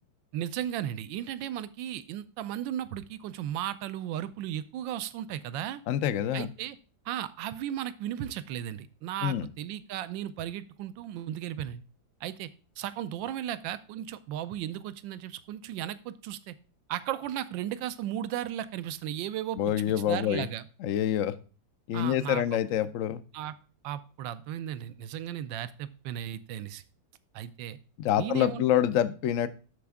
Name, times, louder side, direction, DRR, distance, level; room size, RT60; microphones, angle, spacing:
voice 1, 0.3-5.8 6.3-6.8 7.0-11.8 12.2-12.5 12.8-16.5 16.9-19.6 20.1-20.6 21.9-22.4 23.3-23.5 23.8-26.8 27.3-27.8 28.2-28.6, right 11 dB, 75° right, 14 dB, 1.3 m, -35 dB
voice 2, 5.9-6.5 9.2-9.5 19.6-20.5 20.8-21.3 21.9-23.2 28.0-29.5, left 10 dB, 70° left, 10 dB, 0.7 m, -26 dB
13.0 x 4.3 x 3.6 m, 0.36 s
omnidirectional pair, 2.1 m